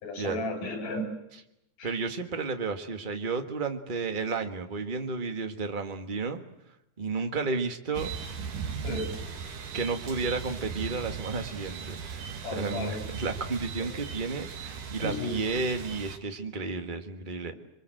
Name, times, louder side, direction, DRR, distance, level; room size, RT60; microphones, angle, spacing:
voice 1, 0.0-1.0 1.8-1.9 8.8-9.3 12.4-13.0 13.8-13.9 15.0-15.4, left 2 dB, 85° left, 5 dB, 6.6 m, -34 dB
voice 2, 1.8-6.4 7.0-8.1 8.7-9.0 9.7-12.3 12.5-17.5, right 4 dB, 30° right, 6 dB, 0.9 m, -32 dB
sound 1, 7.9-16.2, right 6 dB, 90° right, 3.7 m, -38 dB
26.0 x 24.0 x 7.8 m, 0.83 s
omnidirectional pair, 3.6 m